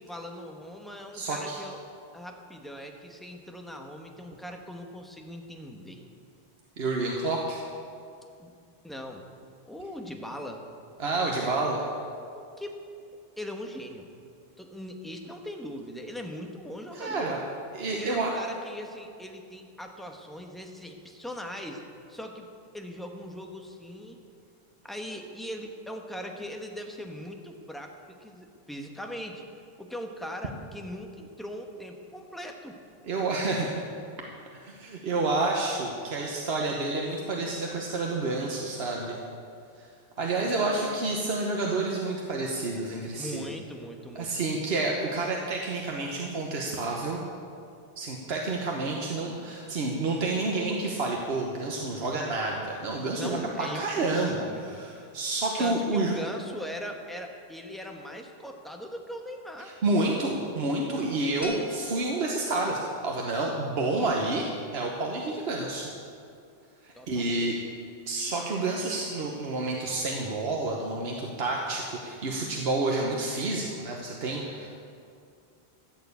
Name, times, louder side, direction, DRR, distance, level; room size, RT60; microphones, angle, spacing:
voice 1, 0.0-1.8 2.1-6.0 8.4-8.5 8.8-9.2 9.7-10.6 12.3-12.8 13.4-14.1 14.6-17.4 18.0-21.8 22.1-22.5 22.7-24.2 24.8-29.4 29.8-32.8 40.4-41.0 43.2-44.3 53.2-54.8 55.6-59.7 66.9-67.4 74.5-74.7, equal, ahead, 2 dB, 1.0 m, -40 dB
voice 2, 1.1-1.6 6.8-7.6 11.0-11.8 16.9-17.4 17.7-18.4 33.0-33.8 34.5-39.2 39.8-39.9 40.2-43.5 44.1-47.2 48.0-56.1 59.6-65.9 66.8-67.6 68.1-74.7, right 2 dB, 80° right, 0 dB, 1.3 m, -29 dB
sound 1, 61.4-63.3, left 3 dB, 15° left, 1.4 m, -42 dB
14.0 x 6.7 x 8.2 m, 2.4 s
omnidirectional pair, 1.0 m